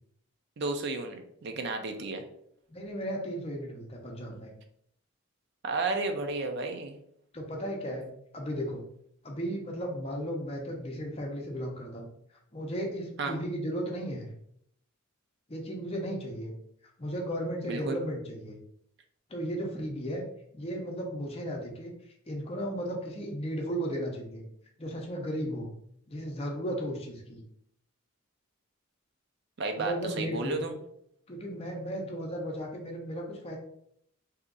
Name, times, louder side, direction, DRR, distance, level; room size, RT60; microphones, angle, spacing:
voice 1, 0.6-2.2 5.6-7.0 13.2-13.4 17.7-18.0 29.6-30.7, right 3 dB, 55° right, 5 dB, 0.5 m, -32 dB
voice 2, 2.7-4.5 7.3-8.1 8.3-8.8 9.2-12.1 12.5-14.3 15.5-16.5 17.0-18.6 19.3-20.2 20.5-21.9 22.3-24.4 24.8-25.7 26.1-27.4 29.8-30.7 31.3-33.6, equal, 30° left, 0 dB, 0.6 m, -35 dB
2.8 x 2.4 x 3.7 m, 0.71 s
head